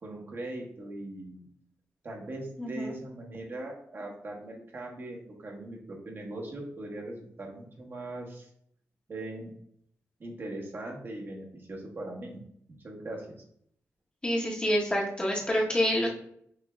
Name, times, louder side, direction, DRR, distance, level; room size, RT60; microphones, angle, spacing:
voice 1, 0.0-1.4 2.0-8.5 9.1-9.5 10.2-12.4 12.8-13.3, right 1 dB, 45° right, -1 dB, 1.2 m, -40 dB
voice 2, 2.6-2.9 14.2-16.1, equal, 20° left, -3 dB, 1.1 m, -27 dB
6.5 x 2.7 x 2.3 m, 0.67 s
wide cardioid pair, 100°, 5 cm